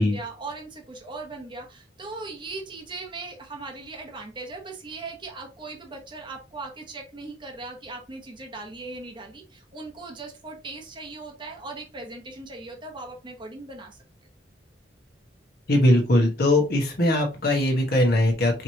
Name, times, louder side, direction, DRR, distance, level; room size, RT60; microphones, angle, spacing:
voice 1, 0.0-14.0, right 3 dB, 25° right, 2 dB, 1.0 m, -39 dB
voice 2, 15.7-18.6, left 1 dB, 60° left, 1 dB, 1.3 m, -20 dB
4.9 x 3.1 x 2.8 m, 0.29 s
head